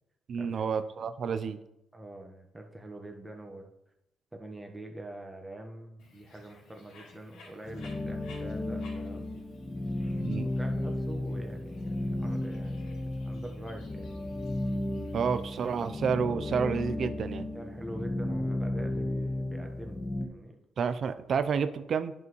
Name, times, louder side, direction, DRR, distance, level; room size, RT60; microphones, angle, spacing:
voice 1, 0.3-1.6 10.2-10.5 15.1-17.5 20.8-22.1, right 6 dB, 55° right, 11 dB, 0.5 m, -30 dB
voice 2, 1.9-3.7 4.3-9.3 10.6-14.1 17.5-20.6, right 1 dB, 15° right, 3 dB, 1.3 m, -44 dB
Bird, 6.0-16.0, left 3 dB, 90° left, 2.2 m, -57 dB
sound 1, 7.6-20.3, left 1 dB, 30° left, 1.7 m, -34 dB
10.5 x 5.5 x 3.1 m, 0.88 s
cardioid pair, 90°, 0 cm